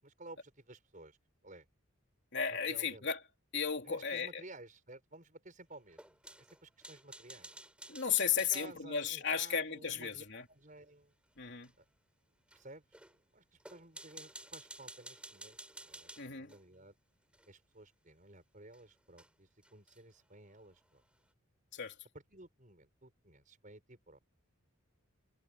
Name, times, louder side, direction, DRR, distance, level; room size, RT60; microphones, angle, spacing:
voice 1, 0.0-1.2 1.4-1.7 2.5-3.1 3.8-6.2 6.5-7.5 8.5-11.1 11.8-11.9 12.5-16.9 17.5-21.0 22.3-24.2, right 2 dB, 35° right, 5.5 m, -55 dB
voice 2, 2.3-3.2 3.5-4.4 7.9-10.5 11.4-11.7 16.2-16.5 21.7-21.9, left 7 dB, 55° left, 3.4 m, -35 dB
sound 1, 5.9-8.7 11.6-11.7 12.5-12.6 12.9-13.1 13.6-16.6 17.3-17.5 18.7-18.8 19.2-19.3 19.6-20.1, right 2 dB, 5° right, 4.9 m, -52 dB
head